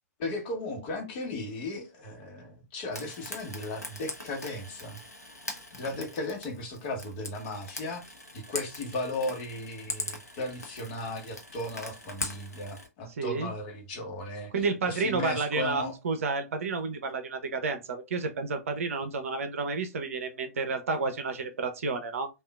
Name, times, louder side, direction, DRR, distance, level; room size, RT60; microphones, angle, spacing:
voice 1, 0.2-5.0 5.7-8.1 8.3-14.5 14.8-16.0, left 2 dB, 35° left, 1.1 m, -36 dB
Frying (food), 2.9-12.9, left 2 dB, 80° left, 0.8 m, -41 dB
voice 2, 13.2-13.5 14.5-22.3, right 4 dB, 55° right, 0.7 m, -31 dB
3.5 x 2.4 x 2.3 m
figure-of-eight pair, 115°, 9 cm